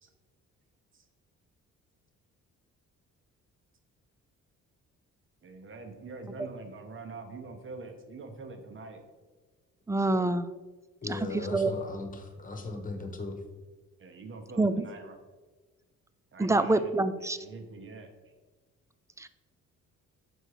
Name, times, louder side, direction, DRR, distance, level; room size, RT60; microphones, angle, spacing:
voice 1, 5.4-9.0 14.0-15.1 16.3-16.9 17.2-18.1, right 3 dB, 40° right, 5 dB, 1.1 m, -44 dB
voice 2, 9.9-10.5 11.0-11.7 14.6-14.9 16.4-17.4 19.2-19.3, right 2 dB, 10° right, 12 dB, 0.3 m, -27 dB
voice 3, 11.0-13.4, left 3 dB, 25° left, 4 dB, 1.2 m, -37 dB
6.3 x 4.4 x 4.9 m, 1.3 s
cardioid pair, 90°, 30 cm